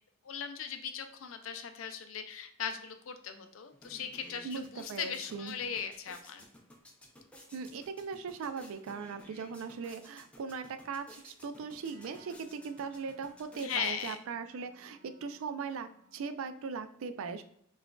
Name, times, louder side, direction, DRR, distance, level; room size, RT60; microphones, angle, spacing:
voice 1, 0.2-6.4 13.6-14.2, left 7 dB, 70° left, 8 dB, 0.4 m, -38 dB
sound 1, 3.4-3.5 3.7-14.6, equal, 5° left, 0.5 m, -56 dB
voice 2, 4.4-5.6 7.5-17.4, right 5 dB, 80° right, 10 dB, 0.4 m, -39 dB
Wind instrument woodwind instrument, 11.6-16.4, right 2 dB, 35° right, 0.6 m, -63 dB
5.8 x 2.4 x 2.3 m, 0.72 s
head